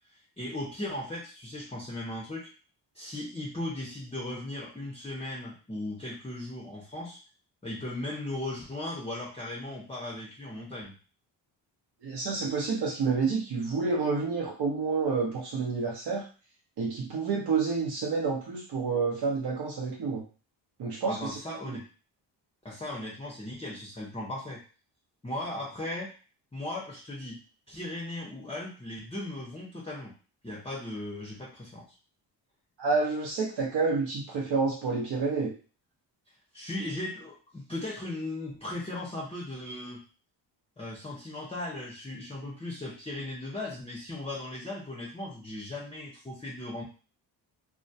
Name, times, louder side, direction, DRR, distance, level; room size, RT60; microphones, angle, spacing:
voice 1, 0.1-2.5 2.9-7.2 7.6-10.9 21.1-21.8 22.6-24.6 25.2-26.1 26.5-27.4 27.7-30.1 30.4-31.9 36.5-40.0 40.8-46.8, left 1 dB, 15° left, -3 dB, 0.6 m, -37 dB
voice 2, 12.0-16.2 16.8-20.2 20.8-21.3 21.7-21.8 32.8-35.5, right 4 dB, 60° right, -3 dB, 0.7 m, -29 dB
2.2 x 2.1 x 2.6 m, 0.37 s
supercardioid pair, 60°, 47 cm